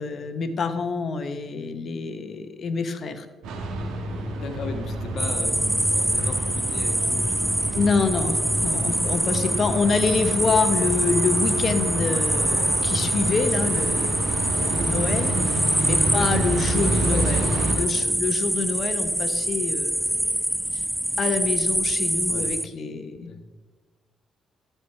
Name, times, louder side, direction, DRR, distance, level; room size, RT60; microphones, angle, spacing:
voice 1, 0.0-3.3 7.7-17.5 17.8-20.4 20.7-20.8 21.2-23.3, left 4 dB, 50° left, 9 dB, 0.9 m, -27 dB
sound 1, 3.4-17.8, right 1 dB, 90° right, 1.3 m, -28 dB
voice 2, 4.4-7.7 8.8-9.0 16.0-16.3 16.8-18.2 22.3-22.5 23.3-23.4, left 4 dB, 65° left, 4 dB, 1.5 m, -37 dB
sound 2, 5.2-22.7, right 1 dB, 10° right, 0.4 m, -25 dB
13.5 x 4.6 x 5.8 m, 1.2 s
cardioid pair, 90°, 0 cm